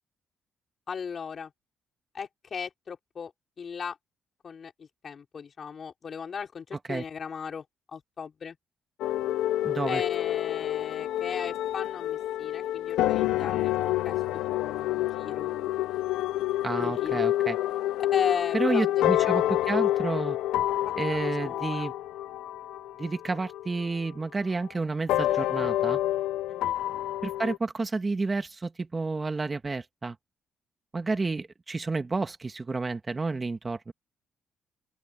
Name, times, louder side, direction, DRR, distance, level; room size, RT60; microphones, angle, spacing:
voice 1, 0.9-1.5 2.1-3.3 3.6-4.0 4.4-7.6 7.9-8.6 9.9-15.7 16.8-17.2 18.1-19.4 20.8-21.9 26.5-26.8, left 6 dB, 45° left, 5.5 m, -37 dB
sound 1, 9.0-24.1 25.1-27.6, left 14 dB, 90° left, 0.8 m, -28 dB
voice 2, 9.6-10.0 16.6-17.6 18.5-20.4 21.0-21.9 23.0-26.0 27.2-30.2 30.9-33.9, right 3 dB, 25° right, 1.8 m, -30 dB
open air
cardioid pair, 90°, 0 cm